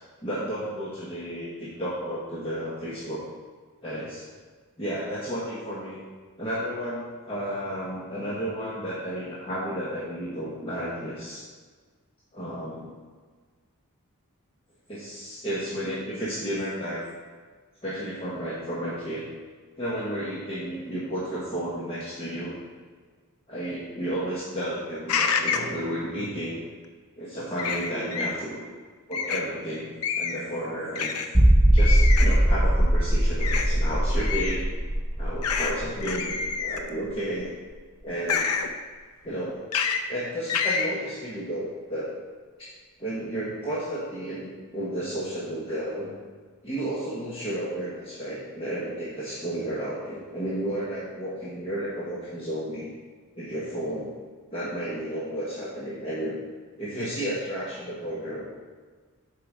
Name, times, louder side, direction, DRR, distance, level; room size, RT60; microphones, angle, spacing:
voice 1, 0.2-3.2 3.8-4.2 4.8-6.0 6.4-11.4 12.3-12.9 14.9-17.1 17.8-19.2 19.8-22.6 23.5-26.6 27.2-28.6 29.1-31.1 31.7-34.7 35.2-37.5 38.0-38.5 39.2-39.6 40.1-42.1 42.6-42.7 43.0-46.1 46.6-52.9 53.4-54.1 54.5-56.4 56.8-58.4, right 1 dB, 25° left, -8 dB, 1.2 m, -32 dB
sound 1, 25.1-25.7 27.6-28.3 29.1-29.5 30.0-30.5 31.0-31.3 31.8-32.4 33.4-33.7 34.2-34.6 35.4-35.7 36.0-36.9 38.3-38.7 39.7-40.0 40.5-40.9, left 6 dB, 75° left, 0.6 m, -27 dB
sound 2, 31.3-36.8 37.1-37.2 37.7-37.8, right 1 dB, 10° right, 0.6 m, -21 dB
7.8 x 4.8 x 4.9 m, 1.5 s
head